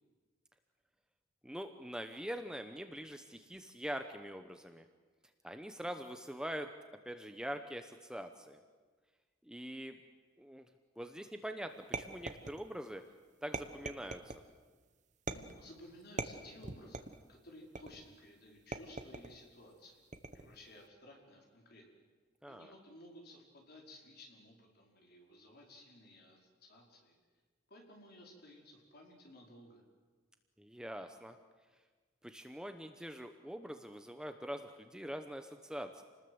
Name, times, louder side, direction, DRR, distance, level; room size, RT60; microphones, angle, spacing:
voice 1, 1.4-4.9 5.4-6.7 7.0-8.6 9.5-10.0 10.4-10.7 11.0-13.0 13.4-14.3 22.4-22.7 30.6-31.4 32.2-36.0, equal, 5° right, 7 dB, 1.0 m, -44 dB
sound 1, 11.9-12.9 13.5-14.5 15.3-15.7 16.2-17.2 17.8-18.2 18.7-19.4 20.1-20.6, right 3 dB, 40° right, 1.2 m, -42 dB
voice 2, 15.3-20.0 20.3-21.8 22.4-27.2 27.7-29.8, left 1 dB, 50° left, 0 dB, 5.0 m, -56 dB
28.5 x 20.0 x 8.1 m, 1.4 s
head